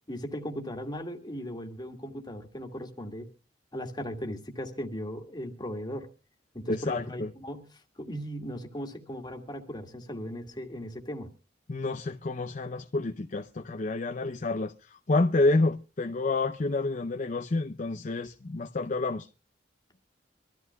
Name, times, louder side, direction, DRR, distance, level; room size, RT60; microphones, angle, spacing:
voice 1, 0.1-3.3 3.7-6.1 6.5-7.7 8.0-11.3, equal, 25° left, 2.0 m, -37 dB
voice 2, 6.7-7.3 11.7-19.3, left 2 dB, 45° left, 0.6 m, -29 dB
24.5 x 14.0 x 2.3 m
head